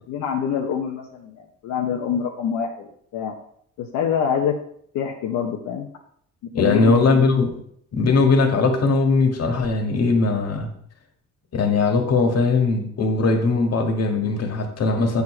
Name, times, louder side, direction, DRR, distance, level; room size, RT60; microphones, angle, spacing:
voice 1, 0.1-3.3 3.8-4.6 4.9-5.9 6.4-7.0, left 7 dB, 85° left, 1 dB, 0.8 m, -25 dB
voice 2, 6.5-7.6 7.9-10.7 11.5-15.2, left 3 dB, 55° left, 3 dB, 1.7 m, -20 dB
8.0 x 4.9 x 4.3 m, 0.67 s
cardioid pair, 90°, 30 cm